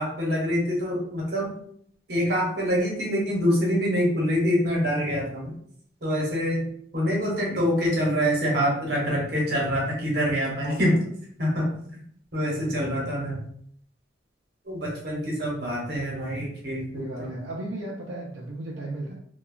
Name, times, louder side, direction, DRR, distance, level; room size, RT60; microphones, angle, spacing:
voice 1, 0.0-1.5 2.1-5.5 6.0-11.0 11.4-11.7 12.3-13.4 14.6-17.4, equal, 55° right, -3 dB, 1.0 m, -25 dB
voice 2, 10.6-10.9 12.6-13.2 16.9-19.1, right 1 dB, 80° right, -3 dB, 0.5 m, -36 dB
2.9 x 2.2 x 2.3 m, 0.64 s
head